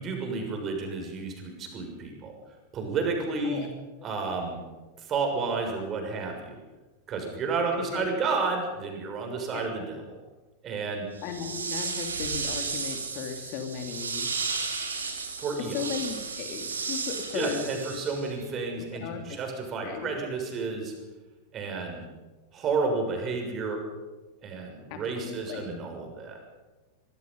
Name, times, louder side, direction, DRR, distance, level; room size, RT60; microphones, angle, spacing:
voice 1, 0.0-2.3 2.7-3.7 4.0-4.6 5.0-6.6 7.1-10.0 10.6-11.1 15.4-15.8 17.3-20.9 21.5-22.0 22.5-23.8 24.4-26.4, right 4 dB, 30° right, 3 dB, 6.7 m, -31 dB
voice 2, 7.7-8.1 9.5-9.7 11.2-14.3 15.7-17.7 19.0-19.4 19.8-20.1 24.9-25.8, left 7 dB, 45° left, 5 dB, 3.3 m, -36 dB
sound 1, 11.2-18.4, right 4 dB, 70° right, 3.8 m, -34 dB
24.0 x 23.5 x 5.6 m, 1.2 s
figure-of-eight pair, 90°, 0 cm